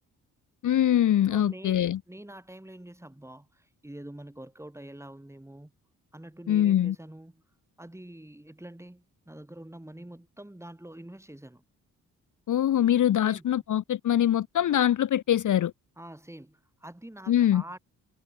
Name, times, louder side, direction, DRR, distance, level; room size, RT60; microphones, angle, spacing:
voice 1, 0.6-2.0 6.5-6.9 12.5-15.7 17.3-17.6, left 11 dB, 55° left, 0.8 m, -23 dB
voice 2, 1.3-5.7 6.1-7.4 7.8-11.6 13.2-13.4 16.0-17.8, right 1 dB, 5° right, 2.9 m, -46 dB
supercardioid pair, 50°, 36 cm